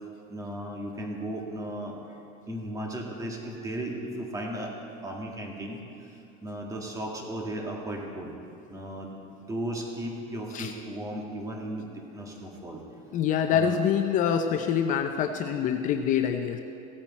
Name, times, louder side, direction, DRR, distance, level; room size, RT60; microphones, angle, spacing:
voice 1, 0.3-2.0 2.5-4.7 5.0-5.8 6.4-8.3 8.7-9.1 9.4-11.8 12.1-12.8 13.5-13.8, right 1 dB, 15° right, 0 dB, 2.0 m, -35 dB
voice 2, 13.1-16.6, left 8 dB, 45° left, 6 dB, 0.7 m, -25 dB
16.5 x 8.7 x 4.3 m, 2.7 s
supercardioid pair, 125°, 19 cm